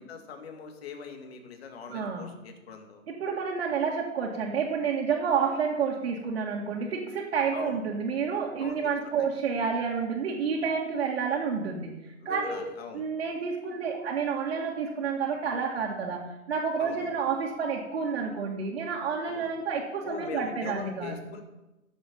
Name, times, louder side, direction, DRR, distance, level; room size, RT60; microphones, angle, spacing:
voice 1, 0.0-3.0 7.5-7.8 8.6-8.8 9.2-9.3 12.2-13.1 16.8-17.1 19.2-19.5 20.0-21.4, left 5 dB, 45° left, 4 dB, 2.5 m, -42 dB
voice 2, 1.9-2.3 3.1-11.9 12.2-12.7 12.9-16.2 16.5-21.1, right 6 dB, 50° right, -3 dB, 2.5 m, -29 dB
14.5 x 7.5 x 5.6 m, 0.99 s
hypercardioid pair, 145°, 41 cm